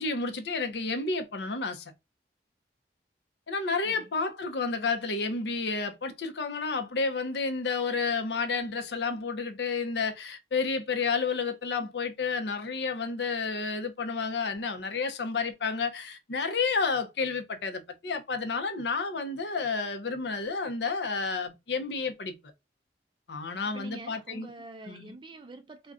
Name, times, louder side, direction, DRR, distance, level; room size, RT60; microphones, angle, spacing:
voice 1, 0.0-1.9 3.5-22.3 23.3-24.5 24.9-25.1, left 4 dB, 70° left, 0.6 m, -31 dB
voice 2, 23.7-25.9, right 2 dB, 30° right, 0.4 m, -46 dB
2.4 x 2.2 x 3.5 m
head